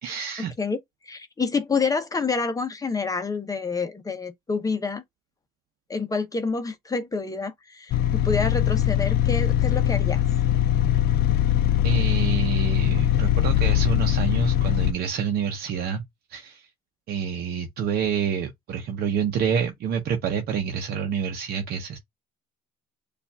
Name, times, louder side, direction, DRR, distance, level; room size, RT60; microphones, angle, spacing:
voice 1, 0.0-0.5 11.8-16.0 16.3-16.7 17.1-22.0, right 7 dB, 65° right, 0.8 m, -28 dB
voice 2, 0.6-5.0 5.9-10.2, left 4 dB, 20° left, 0.8 m, -28 dB
sound 1, 7.9-14.9, left 11 dB, 65° left, 0.4 m, -21 dB
6.8 x 2.5 x 2.2 m
cardioid pair, 110°, 17 cm